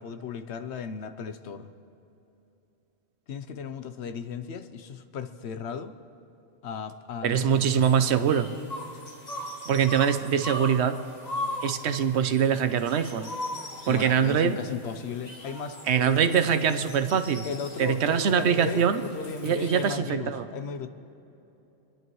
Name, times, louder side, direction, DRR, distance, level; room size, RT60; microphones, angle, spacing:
voice 1, 0.0-1.7 3.3-6.0 6.6-7.7 13.9-16.6 17.4-20.9, left 6 dB, 80° left, 10 dB, 1.0 m, -36 dB
voice 2, 7.2-8.5 9.7-11.0 11.6-13.3 13.9-14.6 15.9-17.4 17.8-19.0 19.4-20.4, right 8 dB, 85° right, 10 dB, 1.0 m, -23 dB
sound 1, 7.5-19.9, left 1 dB, 40° left, 1.7 m, -40 dB
28.0 x 10.5 x 3.1 m, 3.0 s
omnidirectional pair, 1.1 m